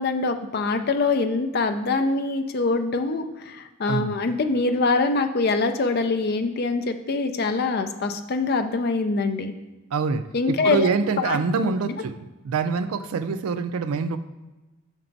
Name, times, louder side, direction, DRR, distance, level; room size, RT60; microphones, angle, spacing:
voice 1, 0.0-9.5 10.3-10.9 11.2-11.9, left 3 dB, 45° left, 8 dB, 0.4 m, -24 dB
voice 2, 9.9-14.2, right 5 dB, 80° right, 11 dB, 0.4 m, -25 dB
5.9 x 4.4 x 3.9 m, 1.1 s
head